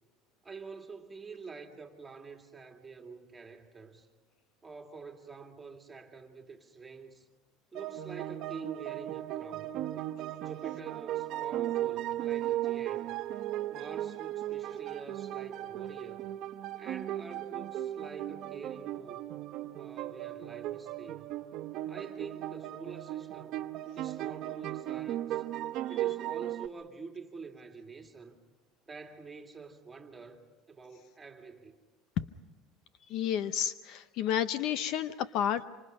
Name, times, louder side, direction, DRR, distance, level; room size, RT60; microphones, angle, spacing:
voice 1, 0.4-4.1 4.6-7.3 7.7-9.8 10.4-13.1 13.7-16.3 16.8-19.3 19.8-21.3 21.9-23.6 24.0-25.4 25.9-28.4 28.9-31.8, right 4 dB, 10° right, 2.4 m, -47 dB
sound 1, 7.7-26.7, right 13 dB, 45° right, 0.8 m, -36 dB
voice 2, 33.1-35.6, left 10 dB, 50° left, 0.7 m, -31 dB
26.5 x 26.0 x 5.4 m
cardioid pair, 155°, 0 cm